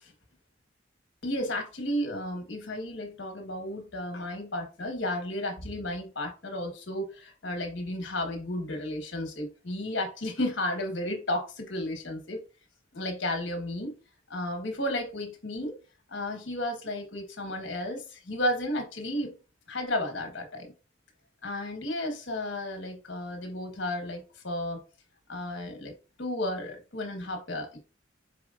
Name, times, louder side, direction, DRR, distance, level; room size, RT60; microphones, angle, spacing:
voice 1, 1.2-12.4 12.9-14.0 14.3-15.7 16.1-19.3 19.7-20.7 21.4-24.8 25.3-25.9 26.2-27.8, left 1 dB, 65° left, 1.3 m, -33 dB
4.8 x 4.0 x 2.4 m
head